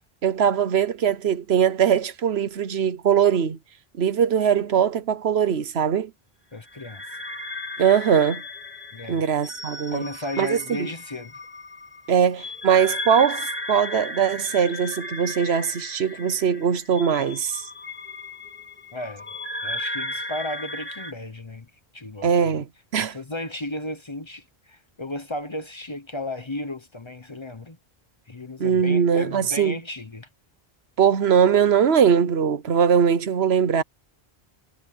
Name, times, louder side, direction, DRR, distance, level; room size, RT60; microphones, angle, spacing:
voice 1, 0.2-3.6 4.0-6.1 7.8-8.4 9.1-10.0 10.4-10.9 12.1-17.6 22.2-22.7 22.9-23.2 28.6-29.8 31.0-33.8, right 7 dB, 75° right, 1.1 m, -21 dB
voice 2, 6.5-7.0 8.9-9.2 9.9-11.4 18.9-19.2 19.6-22.6 23.0-27.8 28.3-30.3, left 1 dB, 30° left, 0.9 m, -34 dB
sound 1, 6.7-21.1, left 1 dB, 10° left, 2.8 m, -35 dB
omnidirectional pair, 1.1 m